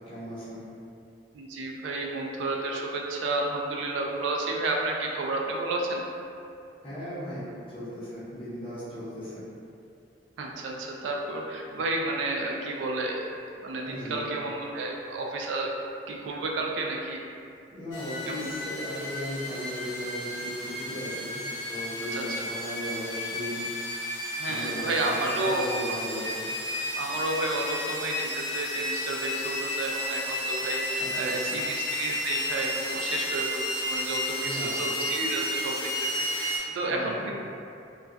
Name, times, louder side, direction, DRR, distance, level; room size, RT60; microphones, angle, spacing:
voice 1, 0.1-0.6 6.8-9.4 13.8-14.3 17.7-21.4 21.7-23.6 24.4-26.5 31.0-31.6 34.4-34.7 36.9-37.3, equal, 30° left, -11 dB, 0.7 m, -37 dB
voice 2, 1.3-6.0 10.4-13.2 13.6-15.7 16.1-17.2 18.3-18.5 22.1-22.2 24.4-25.8 26.9-37.4, right 2 dB, 80° right, 0 dB, 0.3 m, -31 dB
sound 1, 17.9-36.6, left 1 dB, 90° left, 0.7 m, -32 dB
2.2 x 2.2 x 2.5 m, 2.6 s
head